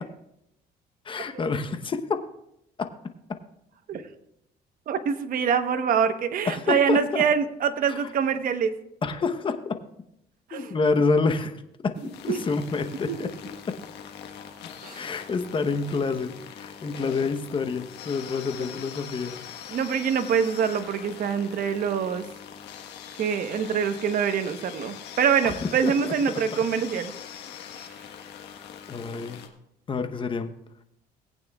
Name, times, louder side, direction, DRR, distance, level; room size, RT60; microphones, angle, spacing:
voice 1, 1.0-2.0 2.8-2.9 6.4-7.2 7.9-8.0 9.0-9.8 10.5-11.5 11.8-11.9 12.2-13.3 13.7-13.8 14.9-19.8 25.4-25.6 25.8-26.1 27.4-27.6 28.9-29.4 29.9-30.5, left 4 dB, 30° left, 8 dB, 0.9 m, -28 dB
voice 2, 4.9-8.8 10.5-10.7 12.3-12.4 13.1-13.2 14.8-15.1 19.7-22.2 23.2-27.1 27.7-27.9, right 7 dB, 55° right, 9 dB, 1.0 m, -25 dB
sound 1, 11.9-29.5, left 8 dB, 85° left, 1.3 m, -42 dB
18.5 x 9.0 x 2.3 m, 0.78 s
cardioid pair, 110°, 17 cm